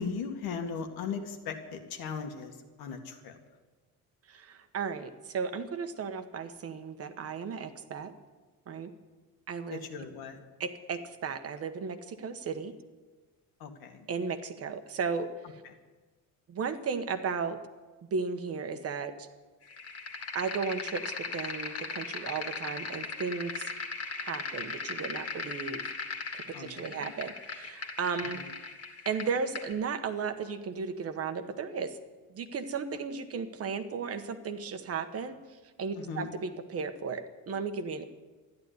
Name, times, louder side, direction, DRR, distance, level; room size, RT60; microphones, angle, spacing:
voice 1, 0.0-3.4 9.7-10.4 13.6-14.1 15.6-15.7 26.5-27.1 28.3-28.5 35.9-36.3, left 5 dB, 75° left, 5 dB, 2.1 m, -38 dB
voice 2, 4.3-8.1 8.7-8.9 9.5-9.8 10.6-12.7 14.1-15.3 16.5-17.6 18.1-19.3 20.3-23.7 24.2-25.9 26.3-28.4 29.0-32.0 32.3-35.4 35.8-38.0, right 5 dB, 40° right, 8 dB, 1.2 m, -35 dB
sound 1, 19.7-29.7, left 4 dB, 40° left, 2.2 m, -38 dB
13.5 x 11.0 x 9.5 m, 1.3 s
cardioid pair, 170°, 37 cm